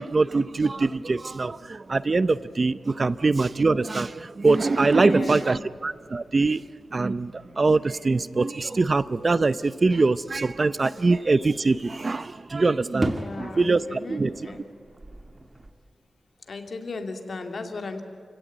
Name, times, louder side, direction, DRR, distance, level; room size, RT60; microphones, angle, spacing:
voice 1, 0.0-6.6 6.9-14.3, right 3 dB, 40° right, 16 dB, 0.6 m, -23 dB
voice 2, 4.9-5.7 13.1-14.6 16.5-18.0, left 3 dB, 60° left, 5 dB, 2.7 m, -36 dB
sound 1, 10.1-15.7, right 1 dB, 25° right, 1.9 m, -38 dB
29.0 x 17.0 x 9.4 m, 2.4 s
wide cardioid pair, 90°, 0 cm